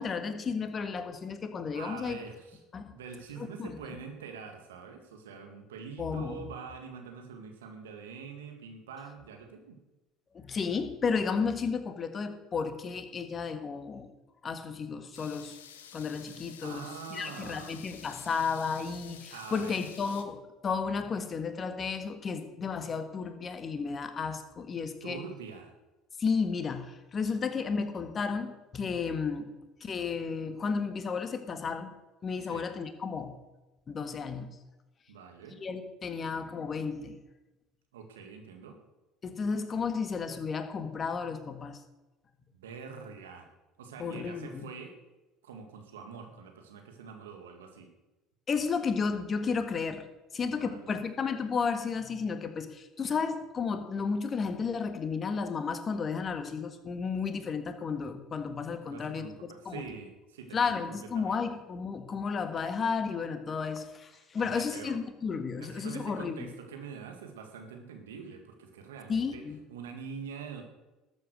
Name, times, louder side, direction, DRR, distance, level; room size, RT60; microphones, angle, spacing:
voice 1, 0.0-2.2 2.7-2.9 3.4-3.7 6.0-6.4 10.3-14.1 14.4-15.6 15.9-25.2 26.2-29.5 29.8-31.9 32.2-33.4 33.9-34.5 35.5-37.2 39.2-41.8 44.0-44.7 48.5-59.3 59.7-59.8 60.5-66.5 69.1-69.6, left 5 dB, 35° left, 9 dB, 1.7 m, -33 dB
voice 2, 1.7-2.6 2.9-9.8 16.6-17.8 19.3-19.8 25.0-25.7 32.4-32.7 35.1-35.6 37.9-38.8 42.5-43.5 43.8-44.9 45.4-47.9 50.4-51.0 58.9-61.4 64.2-65.0 65.6-69.4 69.7-70.6, right 6 dB, 80° right, 5 dB, 2.0 m, -45 dB
sound 1, 15.1-20.2, left 8 dB, 85° left, 1.1 m, -50 dB
13.0 x 8.3 x 6.5 m, 1.1 s
hypercardioid pair, 65°, 0 cm